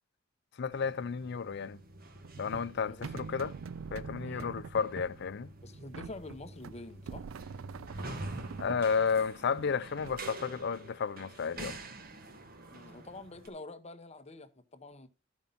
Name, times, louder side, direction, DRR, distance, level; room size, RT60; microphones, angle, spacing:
voice 1, 0.6-1.8 2.4-3.6 3.9-5.5 8.6-11.8, left 6 dB, 60° left, 0.5 m, -32 dB
sound 1, 0.7-13.5, right 2 dB, 50° right, 1.4 m, -47 dB
sound 2, 2.2-10.3, right 5 dB, 85° right, 0.4 m, -45 dB
voice 2, 2.9-3.3 4.2-4.6 5.6-7.3 12.7-15.1, left 2 dB, 35° left, 0.9 m, -47 dB
12.5 x 5.3 x 5.6 m
head